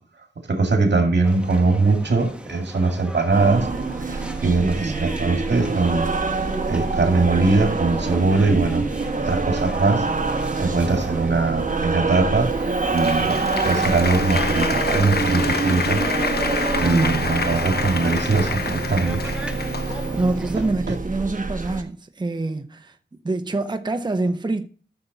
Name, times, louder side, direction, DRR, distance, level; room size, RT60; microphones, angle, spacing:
voice 1, 0.5-3.7 4.1-6.1 6.7-8.9 9.1-10.1 10.6-12.5 12.9-16.0 16.8-19.3 20.9-21.0, right 3 dB, 75° right, 2.2 m, -21 dB
sound 1, 1.2-20.7, right 1 dB, 5° right, 1.4 m, -38 dB
sound 2, 3.3-21.8, right 3 dB, 50° right, 1.4 m, -26 dB
voice 2, 4.6-5.1 16.9-17.3 20.1-23.0 23.2-24.7, right 2 dB, 25° right, 0.7 m, -26 dB
Applause, 12.6-20.2, left 5 dB, 65° left, 1.0 m, -28 dB
13.5 x 6.9 x 4.1 m
wide cardioid pair, 75°, 18 cm